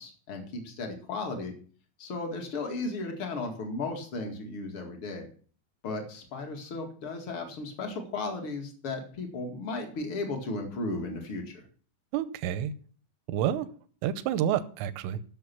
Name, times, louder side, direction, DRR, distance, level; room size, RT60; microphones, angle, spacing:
voice 1, 0.0-1.5 2.0-5.3 5.8-11.6, left 3 dB, 60° left, 3 dB, 1.4 m, -35 dB
voice 2, 12.1-12.7 13.3-13.7 14.0-15.2, right 10 dB, 85° right, 14 dB, 3.2 m, -29 dB
14.0 x 6.8 x 5.9 m, 0.43 s
omnidirectional pair, 5.9 m